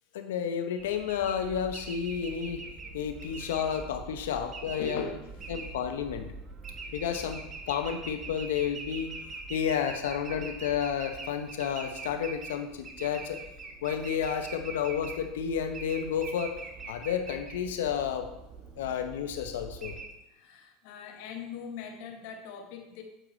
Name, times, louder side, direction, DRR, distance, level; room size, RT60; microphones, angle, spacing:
voice 1, 0.1-2.6 2.9-5.0 5.5-6.3 6.9-9.1 9.5-13.4 13.8-16.5 16.9-18.3 18.8-20.0, left 8 dB, 85° left, 6 dB, 0.8 m, -31 dB
sound 1, 0.8-20.1, right 3 dB, 30° right, 1.0 m, -43 dB
voice 2, 4.6-5.3 20.3-23.0, left 5 dB, 70° left, 5 dB, 1.1 m, -40 dB
7.7 x 4.8 x 3.8 m, 0.89 s
supercardioid pair, 115°, 0 cm